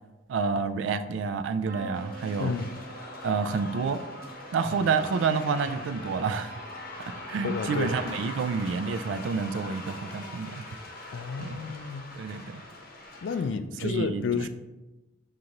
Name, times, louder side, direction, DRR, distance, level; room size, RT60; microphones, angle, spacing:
voice 1, 0.3-2.6 3.2-4.0 4.5-6.6 7.3-10.6 11.4-11.6 12.2-12.6 13.8-14.5, right 5 dB, 80° right, 0.3 m, -29 dB
sound 1, 1.7-9.5 9.9-10.5 11.7-11.9 12.2-12.3, right 4 dB, 45° right, 0.7 m, -50 dB
sound 2, 1.9-13.4, left 2 dB, 55° left, 0.7 m, -41 dB
voice 2, 2.4-2.7 7.4-8.0 11.1-12.1 13.2-14.5, left 5 dB, 75° left, 0.3 m, -31 dB
6.5 x 2.5 x 2.9 m
head